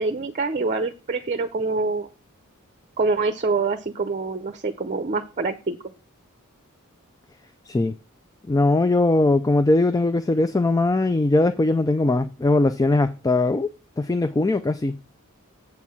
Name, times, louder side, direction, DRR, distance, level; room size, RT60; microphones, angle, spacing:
voice 1, 0.0-2.1 3.0-5.8, right 3 dB, 35° right, 0.7 m, -25 dB
voice 2, 8.5-13.7 14.0-15.0, left 2 dB, 15° left, 0.4 m, -20 dB
7.9 x 4.7 x 7.1 m
head